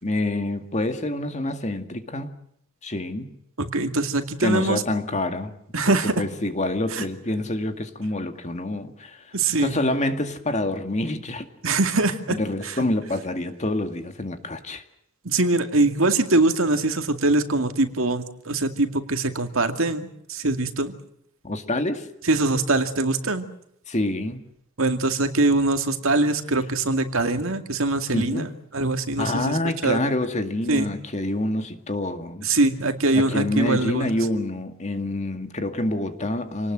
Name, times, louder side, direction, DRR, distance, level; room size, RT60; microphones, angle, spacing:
voice 1, 0.0-2.4 2.8-3.3 4.4-5.5 5.9-11.5 12.3-14.8 21.4-22.1 23.9-24.4 28.1-28.5 29.2-32.5 33.1-36.7, left 1 dB, 35° left, 7 dB, 2.1 m, -27 dB
voice 2, 3.6-4.8 5.7-6.1 6.9-7.0 9.3-9.8 11.6-12.4 12.6-12.7 15.2-20.9 22.3-23.5 24.8-29.6 29.8-30.0 30.7-30.9 32.4-34.1, right 2 dB, 65° right, 7 dB, 2.3 m, -23 dB
28.0 x 19.5 x 7.7 m, 0.71 s
head